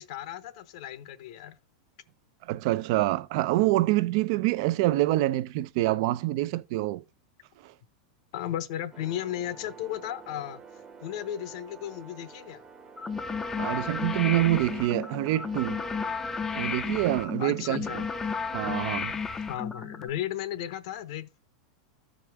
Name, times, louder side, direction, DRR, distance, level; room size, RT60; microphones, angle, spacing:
voice 1, 0.0-1.6 8.3-10.6 11.0-12.6 17.4-18.1 18.6-18.7 19.3-21.4, left 11 dB, 55° left, 0.7 m, -35 dB
voice 2, 2.5-7.0 7.6-7.7 13.6-15.8 16.5-18.0 18.5-19.1, right 16 dB, 50° right, 0.5 m, -26 dB
sound 1, 8.9-16.1, right 5 dB, 15° right, 0.9 m, -49 dB
sound 2, 13.0-20.1, left 5 dB, 10° left, 0.5 m, -33 dB
14.0 x 5.0 x 3.5 m
supercardioid pair, 160°, 4 cm